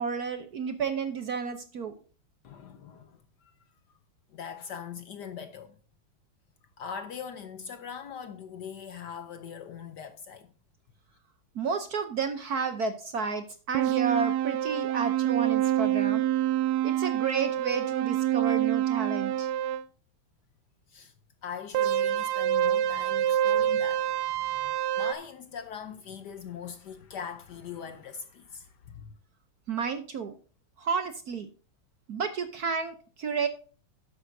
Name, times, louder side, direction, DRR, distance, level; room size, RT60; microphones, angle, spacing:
voice 1, 0.0-1.9 11.5-16.3 16.8-19.5 29.7-30.4 30.8-31.5 32.1-33.5, right 5 dB, 60° right, 1.1 m, -31 dB
voice 2, 2.4-3.5 4.3-5.8 6.8-10.5 20.9-21.1 21.4-24.1 24.5-29.1, left 7 dB, 65° left, 1.1 m, -41 dB
sound 1, 13.7-19.8 21.7-25.1, right 11 dB, 85° right, 1.6 m, -26 dB
12.0 x 10.0 x 2.7 m
omnidirectional pair, 2.4 m